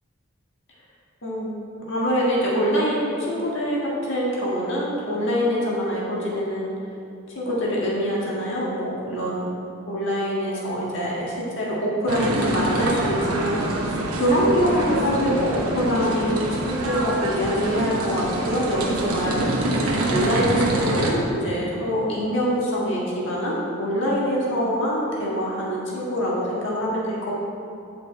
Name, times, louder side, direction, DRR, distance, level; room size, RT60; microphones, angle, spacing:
voice 1, 1.2-3.8 4.1-6.7 7.3-9.4 9.9-13.8 14.2-19.5 20.0-27.3, equal, 55° left, -5 dB, 1.7 m, -24 dB
sound 1, 12.1-21.1, right 1 dB, 90° right, 1.1 m, -25 dB
8.9 x 5.7 x 4.1 m, 2.7 s
head